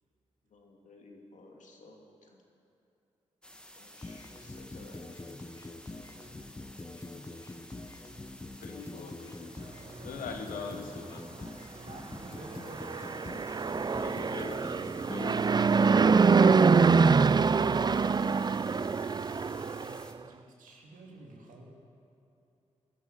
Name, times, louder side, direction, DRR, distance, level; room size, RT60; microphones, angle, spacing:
voice 1, 0.5-2.4 3.8-5.4 6.2-6.3, left 2 dB, 70° left, 1 dB, 2.3 m, -55 dB
sound 1, 3.4-20.1, equal, 5° left, 1.7 m, -53 dB
sound 2, 4.0-16.9, left 2 dB, 25° left, 1.0 m, -44 dB
voice 2, 8.6-9.7 10.0-11.5 14.0-14.8 15.1-15.4, left 5 dB, 85° left, 5 dB, 1.1 m, -42 dB
voice 3, 11.8-15.2 18.2-21.7, right 2 dB, 80° right, 0 dB, 2.2 m, -52 dB
Fixed-wing aircraft airplane, 12.6-20.0, right 5 dB, 30° right, 0.4 m, -24 dB
19.0 x 11.5 x 5.4 m, 2.7 s
supercardioid pair, 40°, 13 cm